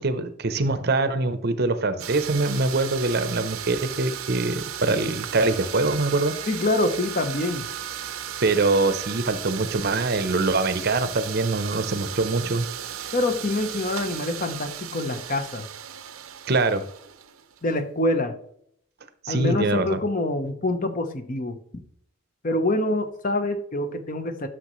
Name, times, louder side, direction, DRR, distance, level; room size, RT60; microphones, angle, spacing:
voice 1, 0.0-6.3 8.4-12.7 16.5-16.9 19.2-20.0, right 3 dB, 50° right, 11 dB, 0.7 m, -24 dB
sound 1, 2.0-17.7, right 10 dB, 90° right, 0.7 m, -35 dB
voice 2, 6.5-7.7 13.1-15.6 17.6-18.3 19.3-21.6 22.4-24.5, left 2 dB, 40° left, 8 dB, 0.8 m, -25 dB
12.0 x 6.3 x 3.1 m, 0.68 s
head